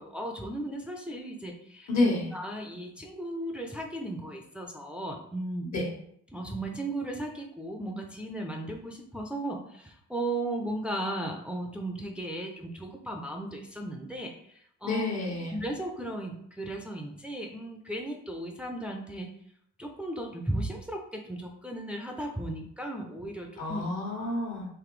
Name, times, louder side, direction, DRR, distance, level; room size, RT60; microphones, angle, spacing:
voice 1, 0.0-5.7 6.3-15.0 15.5-19.3 19.8-23.9, right 1 dB, 5° right, 2 dB, 0.5 m, -36 dB
voice 2, 1.9-2.3 5.7-5.9 14.8-15.5 23.6-24.7, left 2 dB, 65° left, -1 dB, 1.4 m, -29 dB
4.0 x 2.6 x 3.1 m, 0.67 s
cardioid pair, 90°, 30 cm